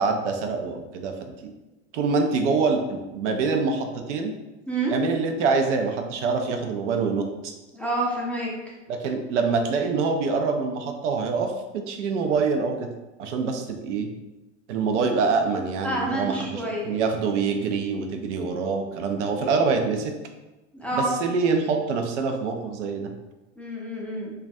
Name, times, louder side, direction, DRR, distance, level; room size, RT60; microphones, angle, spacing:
voice 1, 0.0-1.5 1.9-4.3 4.9-7.5 8.9-12.9 13.2-14.1 14.7-20.1 20.9-23.1, right 4 dB, 80° right, 4 dB, 0.5 m, -25 dB
voice 2, 7.7-8.5 15.8-16.9 20.7-21.1 23.6-24.3, right 2 dB, 5° left, -5 dB, 0.4 m, -28 dB
2.3 x 2.2 x 2.6 m, 1.1 s
hypercardioid pair, 95°, 35 cm